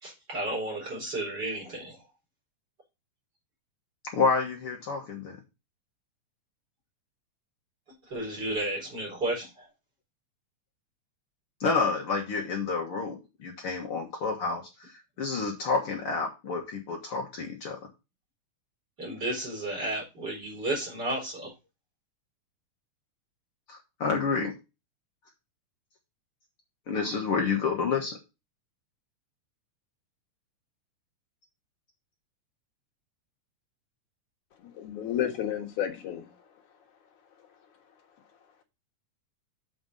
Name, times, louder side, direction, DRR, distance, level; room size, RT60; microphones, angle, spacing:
voice 1, 0.0-2.0 8.1-9.7 19.0-21.5, right 1 dB, 35° right, 4.8 m, -32 dB
voice 2, 4.1-5.4 11.6-14.9 15.2-17.8 23.7-24.5 26.9-28.2, left 4 dB, 55° left, 2.2 m, -29 dB
voice 3, 34.6-36.4 37.4-37.5, left 10 dB, 80° left, 2.9 m, -32 dB
8.0 x 5.3 x 5.4 m
omnidirectional pair, 3.4 m